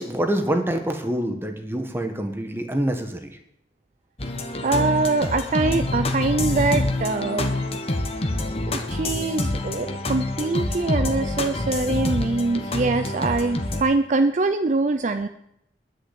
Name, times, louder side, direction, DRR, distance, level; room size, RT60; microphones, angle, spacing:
voice 1, 0.0-3.4, right 1 dB, 15° right, 5 dB, 1.3 m, -26 dB
sound 1, 4.2-13.8, left 2 dB, 35° left, 1.2 m, -26 dB
voice 2, 4.6-7.5 8.3-15.3, right 3 dB, 40° right, 8 dB, 0.5 m, -24 dB
11.0 x 6.4 x 8.5 m, 0.78 s
head